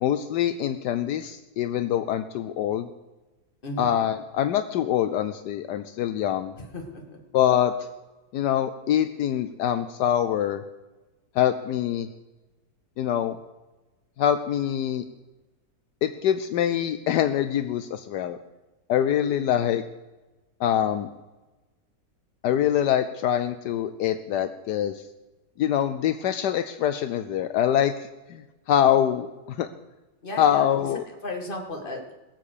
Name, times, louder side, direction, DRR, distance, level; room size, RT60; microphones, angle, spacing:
voice 1, 0.0-2.9 3.8-6.5 7.3-7.7 8.3-10.6 11.3-12.1 13.0-13.4 14.2-15.0 16.0-18.4 18.9-19.8 20.6-21.1 22.4-25.0 25.6-28.4 28.7-29.7 30.4-31.0, left 10 dB, 75° left, 10 dB, 1.2 m, -24 dB
voice 2, 3.6-4.0 6.6-7.2 19.3-19.4 30.2-32.1, left 1 dB, 30° left, 2 dB, 2.1 m, -36 dB
20.5 x 7.4 x 6.6 m, 1.1 s
omnidirectional pair, 1.8 m